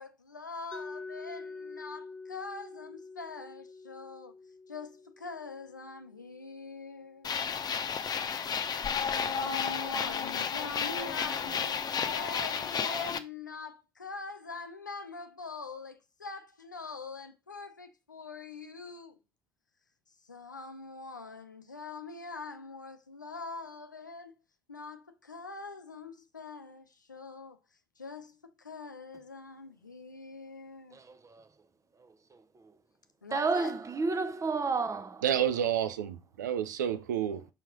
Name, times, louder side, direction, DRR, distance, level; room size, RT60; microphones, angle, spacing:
voice 1, 0.0-4.3 4.7-7.3 9.1-19.2 20.2-24.3 24.7-27.6 28.0-31.0 33.2-33.8, left 4 dB, 90° left, 0.5 m, -43 dB
Mallet percussion, 0.7-6.6, left 3 dB, 10° left, 0.7 m, -46 dB
sound 1, 7.2-13.2, left 7 dB, 45° left, 0.7 m, -32 dB
voice 2, 30.9-31.4 33.3-35.5 37.3-37.4, right 4 dB, 35° right, 0.9 m, -31 dB
voice 3, 35.2-37.5, right 9 dB, 80° right, 0.5 m, -30 dB
6.0 x 4.6 x 3.8 m
figure-of-eight pair, 40°, 10 cm